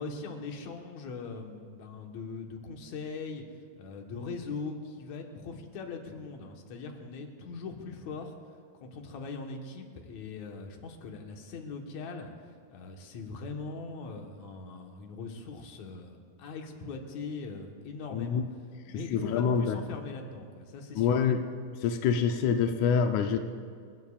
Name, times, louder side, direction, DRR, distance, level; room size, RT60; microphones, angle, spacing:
voice 1, 0.0-3.4 3.8-8.3 8.8-12.3 12.7-18.4 18.9-21.2, left 4 dB, 60° left, 2 dB, 2.3 m, -41 dB
voice 2, 18.1-18.4 19.1-19.8 21.0-21.4 21.8-23.4, left 6 dB, 85° left, 5 dB, 1.6 m, -26 dB
29.0 x 14.5 x 2.4 m, 2.2 s
omnidirectional pair, 4.2 m